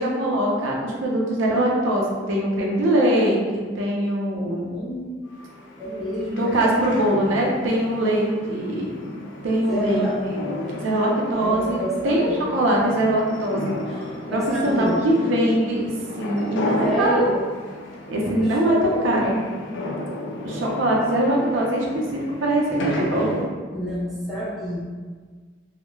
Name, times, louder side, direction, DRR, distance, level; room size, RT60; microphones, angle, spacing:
voice 1, 0.0-4.7 6.3-8.9 9.4-10.5 10.8-11.8 12.0-13.7 14.3-15.9 16.2-17.3 18.1-18.8 19.0-19.4 20.4-21.9 22.1-23.4, right 1 dB, 90° right, -2 dB, 0.5 m, -22 dB
voice 2, 4.7-5.3 5.8-6.7 9.7-10.2 11.4-12.6 13.9-15.1 16.8-17.4 18.3-19.3 23.7-24.8, equal, ahead, -10 dB, 0.6 m, -28 dB
sound 1, 5.3-23.5, left 1 dB, 80° left, 0.4 m, -34 dB
3.0 x 2.0 x 2.2 m, 1.5 s
head